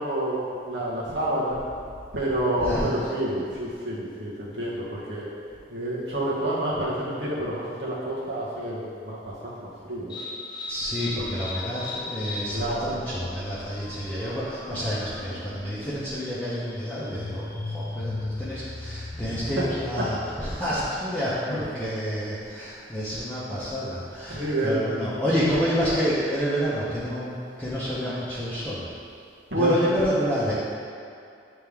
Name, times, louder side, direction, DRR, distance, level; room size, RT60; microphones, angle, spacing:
voice 1, 0.0-1.6 2.1-5.3 5.7-10.2 12.5-13.0 19.2-19.7 21.5-21.6 24.3-24.8 29.5-30.0, right 1 dB, 70° right, -7 dB, 1.5 m, -28 dB
voice 2, 2.6-2.9 10.7-28.9 29.5-30.5, equal, 10° left, -12 dB, 0.8 m, -29 dB
sound 1, 10.1-20.7, left 2 dB, 25° left, 0.5 m, -38 dB
8.8 x 3.4 x 3.4 m, 2.4 s
head